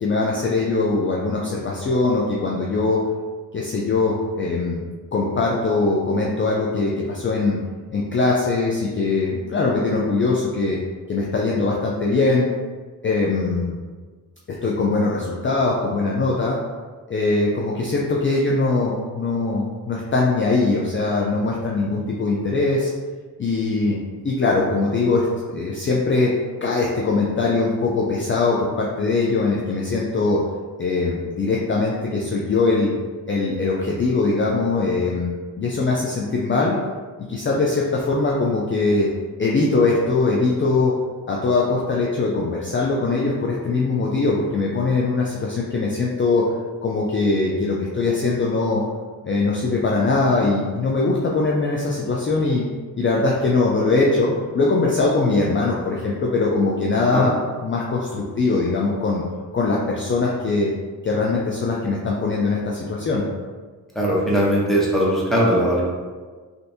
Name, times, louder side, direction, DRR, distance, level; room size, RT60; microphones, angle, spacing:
voice 1, 0.0-3.0 3.5-4.8 5.1-7.6 7.9-10.8 11.1-12.5 13.0-13.8 14.6-16.6 17.1-22.9 23.4-24.0 24.2-26.3 26.6-30.4 30.8-32.9 33.3-36.8 37.2-39.1 39.4-40.9 41.3-46.4 46.8-48.8 49.2-52.6 52.9-57.3 57.6-59.2 59.5-60.7 61.0-63.3, left 3 dB, 35° left, -3 dB, 0.4 m, -21 dB
voice 2, 63.9-65.8, equal, ahead, -5 dB, 0.8 m, -19 dB
3.4 x 2.6 x 2.6 m, 1.4 s
wide cardioid pair, 95°, 37 cm